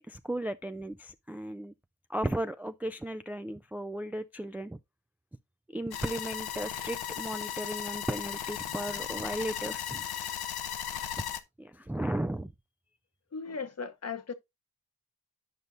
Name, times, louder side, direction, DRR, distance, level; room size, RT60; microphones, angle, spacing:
voice 1, 0.0-1.7 2.1-4.8 5.7-10.0 11.6-12.5, right 1 dB, 5° right, 0.4 m, -35 dB
sound 1, 5.9-11.4, left 10 dB, 70° left, 0.8 m, -36 dB
voice 2, 13.3-14.3, left 5 dB, 40° left, 1.0 m, -37 dB
9.7 x 5.3 x 2.6 m
supercardioid pair, 40°, 39 cm